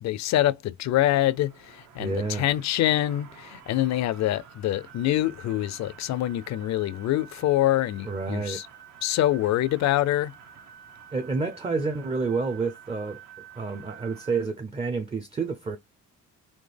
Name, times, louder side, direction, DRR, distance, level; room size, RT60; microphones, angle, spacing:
voice 1, 0.0-8.7 9.0-10.3, left 14 dB, 65° left, 0.4 m, -25 dB
sound 1, 0.8-14.5, right 8 dB, 65° right, 0.9 m, -49 dB
voice 2, 2.0-2.5 8.1-8.6 11.1-13.2 13.6-15.8, right 4 dB, 20° right, 0.5 m, -29 dB
4.2 x 2.9 x 3.3 m
cardioid pair, 90°, 30 cm